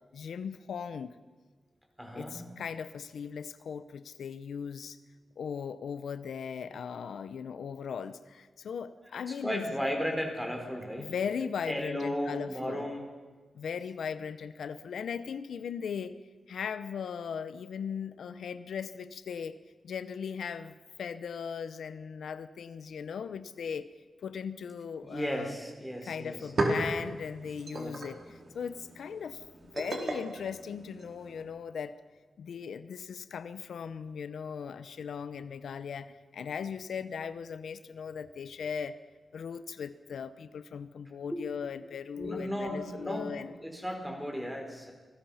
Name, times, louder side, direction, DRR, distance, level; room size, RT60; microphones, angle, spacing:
voice 1, 0.1-1.1 2.1-5.0 5.4-9.7 11.0-12.9 13.5-16.2 16.5-23.9 24.2-25.6 26.0-32.0 32.4-39.0 39.3-43.5, left 6 dB, 85° left, 12 dB, 0.8 m, -38 dB
voice 2, 2.0-2.4 9.1-11.1 11.6-13.0 25.0-26.5 27.7-27.9 41.3-41.5 42.2-44.9, equal, 5° right, 3 dB, 4.6 m, -35 dB
sound 1, 25.9-26.0 26.2-31.4, right 2 dB, 45° right, 4.0 m, -36 dB
27.5 x 20.0 x 5.8 m, 1.4 s
wide cardioid pair, 125°, 0 cm